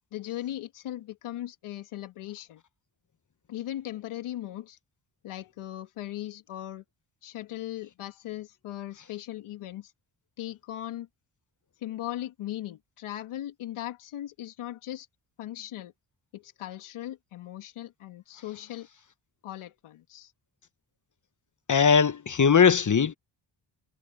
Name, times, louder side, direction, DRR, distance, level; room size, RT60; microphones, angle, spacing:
voice 1, 0.1-2.6 3.5-4.8 5.2-6.8 7.2-9.9 10.4-11.1 11.8-15.1 15.4-15.9 16.3-18.9 19.4-20.3, left 13 dB, 85° left, 2.3 m, -38 dB
voice 2, 21.7-23.1, left 6 dB, 40° left, 1.3 m, -20 dB
supercardioid pair, 60°, 48 cm